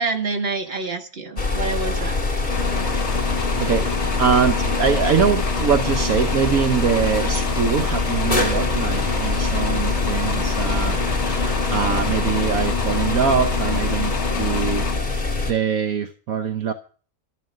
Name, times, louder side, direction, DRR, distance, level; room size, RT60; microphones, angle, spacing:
voice 1, 0.0-2.2, right 3 dB, 40° right, 1.8 m, -27 dB
sound 1, 1.4-15.5, left 3 dB, 30° left, 2.4 m, -24 dB
sound 2, 2.5-15.5, left 5 dB, 50° left, 1.8 m, -28 dB
voice 2, 4.2-11.0 11.2-14.9 15.5-16.7, right 7 dB, 70° right, 1.3 m, -23 dB
sound 3, 6.0-14.0, left 7 dB, 5° left, 5.5 m, -44 dB
12.5 x 11.0 x 6.2 m
omnidirectional pair, 1.6 m